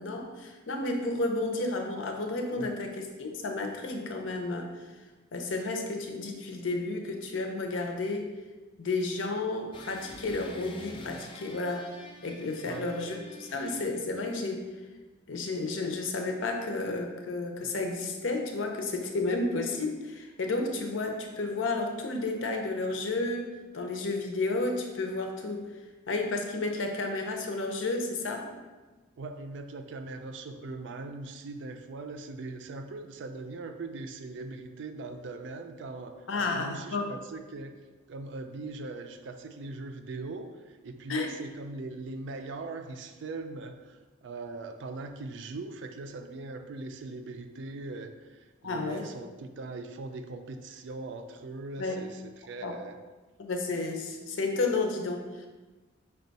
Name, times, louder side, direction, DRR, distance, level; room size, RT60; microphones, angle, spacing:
voice 1, 0.0-4.7 5.3-8.3 8.8-11.9 12.2-14.7 15.3-23.5 23.7-25.7 26.1-28.5 36.3-37.1 41.1-41.3 48.6-49.1 51.8-52.0 52.6-52.7 53.4-55.5, left 3 dB, 75° left, 3 dB, 0.6 m, -32 dB
sound 1, 9.7-14.2, left 2 dB, 25° left, 0.3 m, -47 dB
voice 2, 12.6-13.2 17.6-17.7 29.2-37.7 38.1-53.0, right 3 dB, 65° right, 7 dB, 0.4 m, -40 dB
5.3 x 2.3 x 4.0 m, 1.2 s
head